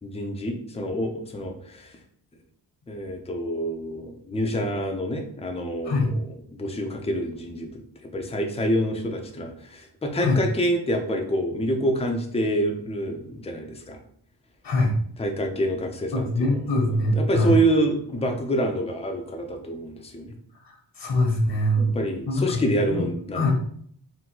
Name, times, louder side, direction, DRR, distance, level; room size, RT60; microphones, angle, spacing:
voice 1, 0.0-1.9 2.9-6.0 6.5-7.8 8.1-14.0 15.2-16.5 16.9-20.3 21.8-23.5, equal, 15° left, 3 dB, 0.5 m, -27 dB
voice 2, 16.1-17.6 20.6-22.0 22.3-22.6 22.9-23.0 23.3-23.5, left 1 dB, 65° left, 1 dB, 1.0 m, -23 dB
3.8 x 2.2 x 4.4 m, 0.62 s
wide cardioid pair, 115°, 44 cm